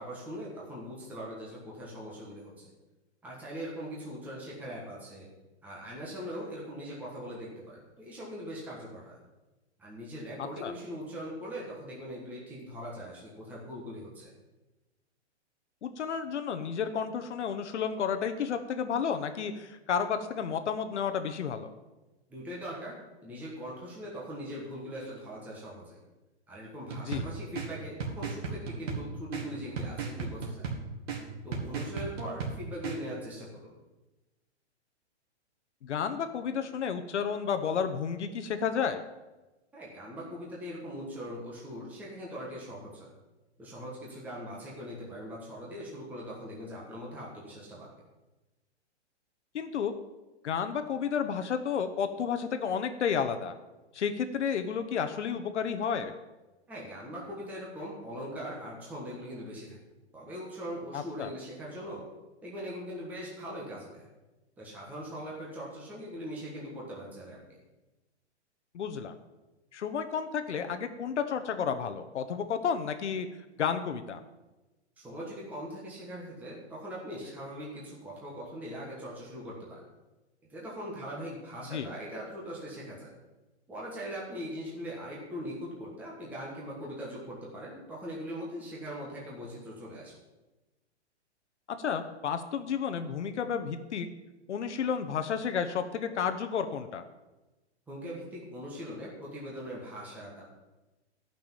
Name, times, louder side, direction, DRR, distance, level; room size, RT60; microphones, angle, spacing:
voice 1, 0.0-2.7 3.2-5.3 5.6-9.2 9.8-14.3 22.3-23.0 23.2-26.0 26.5-30.7 31.4-33.8 39.7-43.1 43.6-47.9 56.7-59.8 60.1-62.0 62.4-64.1 64.6-67.6 75.0-79.8 80.5-83.1 83.7-90.1 97.9-100.5, equal, 5° right, -5 dB, 1.3 m, -41 dB
voice 2, 15.8-21.7 27.1-27.3 35.8-39.0 49.5-49.9 50.4-53.5 53.9-56.1 60.9-61.3 68.7-69.1 69.7-73.3 73.6-74.2 81.7-81.9 91.7-94.1 94.5-97.0, left 7 dB, 80° left, 7 dB, 1.1 m, -31 dB
sound 1, 26.9-33.0, right 4 dB, 60° right, 2.3 m, -37 dB
12.0 x 6.0 x 7.2 m, 1.1 s
hypercardioid pair, 170°, 35 cm